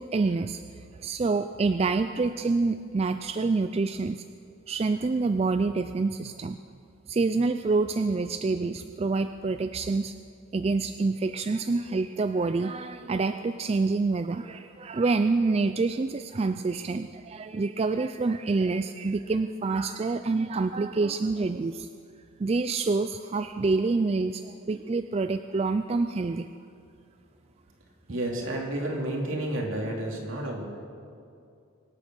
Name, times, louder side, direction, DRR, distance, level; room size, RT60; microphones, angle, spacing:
voice 1, 0.0-4.2 4.7-6.6 7.1-10.1 10.5-21.9 22.4-26.5, right 3 dB, 30° right, 9 dB, 0.3 m, -27 dB
voice 2, 28.1-30.6, right 1 dB, 65° right, -1 dB, 2.8 m, -31 dB
24.5 x 8.7 x 6.3 m, 2.4 s
head